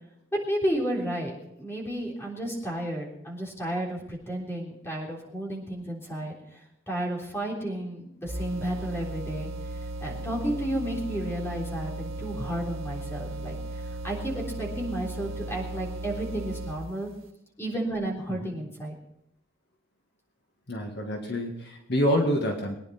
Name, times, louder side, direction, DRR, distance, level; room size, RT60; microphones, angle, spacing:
voice 1, 0.5-1.3 1.6-6.6 6.9-17.1 17.6-18.9, right 1 dB, 10° left, -2 dB, 3.6 m, -32 dB
sound 1, 8.3-17.0, right 2 dB, 90° right, 1.9 m, -36 dB
voice 2, 20.7-22.7, equal, 55° left, 2 dB, 1.8 m, -27 dB
22.5 x 10.0 x 4.3 m, 0.80 s
head